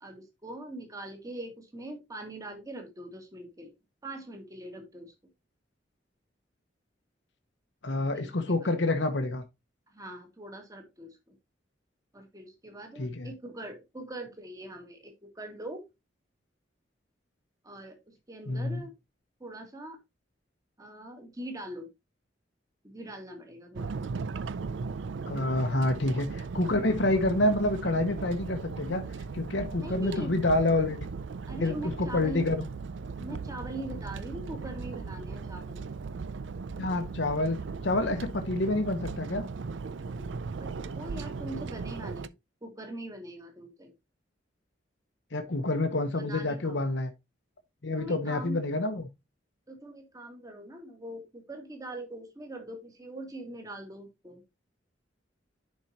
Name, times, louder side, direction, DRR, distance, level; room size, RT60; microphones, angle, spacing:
voice 1, 0.0-3.7 4.0-5.1 8.1-8.7 9.9-11.4 12.1-15.9 17.6-18.9 19.4-20.0 20.8-21.9 22.8-24.0 25.7-25.9 29.8-30.3 31.5-32.6 33.2-35.9 40.0-40.3 40.6-42.3 42.6-43.9 46.0-46.9 48.0-48.6 49.7-54.4, right 1 dB, 20° right, 1.8 m, -42 dB
voice 2, 7.8-9.4 13.0-13.3 18.5-18.8 25.3-29.0 29.3-31.1 31.6-32.6 36.8-37.6 37.8-39.4 45.3-47.1 47.8-49.1, left 2 dB, 75° left, 1.0 m, -28 dB
sound 1, 23.8-42.3, right 4 dB, 80° right, 0.5 m, -37 dB
10.5 x 4.6 x 2.8 m
head